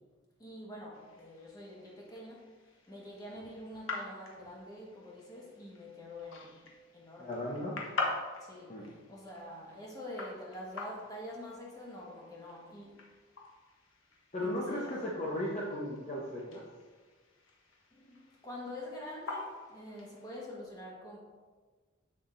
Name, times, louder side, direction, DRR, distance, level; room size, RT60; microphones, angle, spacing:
voice 1, 0.4-2.5 2.9-7.3 8.4-13.0 14.4-15.1 17.9-21.2, left 1 dB, 20° left, -3 dB, 1.5 m, -46 dB
sound 1, 0.9-20.5, left 3 dB, 90° left, 1.1 m, -45 dB
voice 2, 7.2-7.8 8.7-8.9 14.3-16.6, left 1 dB, 35° left, -5 dB, 0.9 m, -36 dB
7.8 x 6.9 x 2.7 m, 1.4 s
head